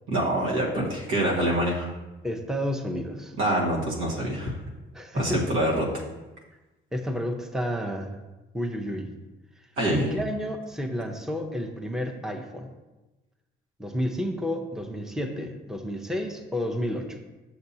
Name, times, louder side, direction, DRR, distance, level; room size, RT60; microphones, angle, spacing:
voice 1, 0.1-1.9 3.4-4.5 5.1-5.8 9.8-10.1, right 1 dB, 85° right, -3 dB, 1.7 m, -25 dB
voice 2, 2.2-3.3 4.9-5.6 6.9-8.2 8.5-9.1 9.9-12.7 13.8-17.2, equal, 5° right, 3 dB, 0.7 m, -30 dB
6.8 x 6.8 x 2.8 m, 1.1 s
cardioid pair, 90°, 20 cm